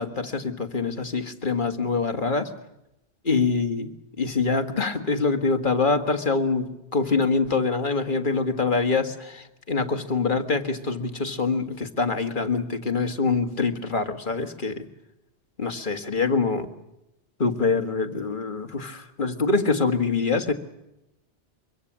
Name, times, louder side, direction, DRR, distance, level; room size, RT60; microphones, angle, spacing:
voice 1, 0.0-2.5 3.2-14.8 15.6-16.7 17.4-20.5, left 4 dB, 45° left, 6 dB, 1.9 m, -25 dB
24.0 x 24.0 x 7.5 m, 0.90 s
omnidirectional pair, 1.2 m